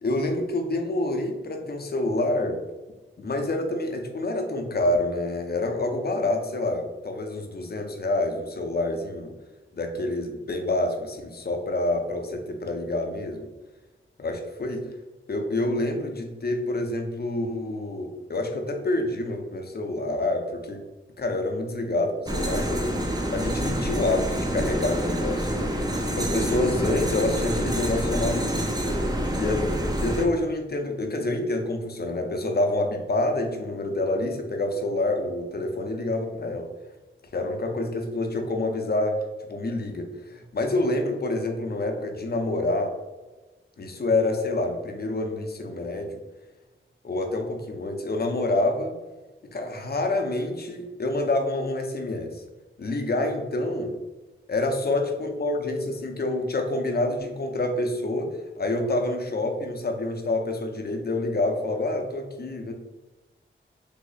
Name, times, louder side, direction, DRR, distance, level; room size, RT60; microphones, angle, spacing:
voice 1, 0.0-2.6 3.2-9.3 9.7-13.5 14.2-14.9 15.3-20.8 21.2-29.0 29.3-29.6 30.0-36.7 37.3-39.2 39.5-42.9 43.8-46.2 47.0-48.9 49.5-52.4 52.8-53.9 54.5-58.3 58.6-62.7, left 2 dB, 50° left, 4 dB, 0.6 m, -27 dB
sound 1, 22.3-30.3, right 1 dB, 20° right, 0.5 m, -27 dB
3.4 x 2.0 x 3.8 m, 1.2 s
wide cardioid pair, 65°, 21 cm